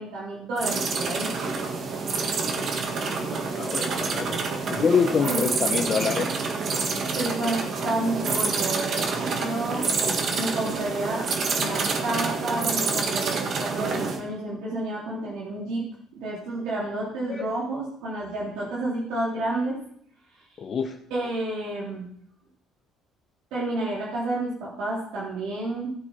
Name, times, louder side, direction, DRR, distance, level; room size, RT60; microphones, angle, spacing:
voice 1, 0.0-1.3 5.3-5.5 7.1-9.9 10.3-15.8 16.1-19.8 21.1-22.1 23.5-25.9, right 2 dB, 85° right, -6 dB, 3.1 m, -30 dB
sound 1, 0.6-14.2, right 4 dB, 50° right, 1.7 m, -27 dB
voice 2, 3.3-4.4 4.7-6.3 17.3-17.5 20.6-21.0, left 6 dB, 40° left, 4 dB, 0.7 m, -26 dB
16.0 x 6.2 x 4.4 m, 0.67 s
cardioid pair, 110°, 0 cm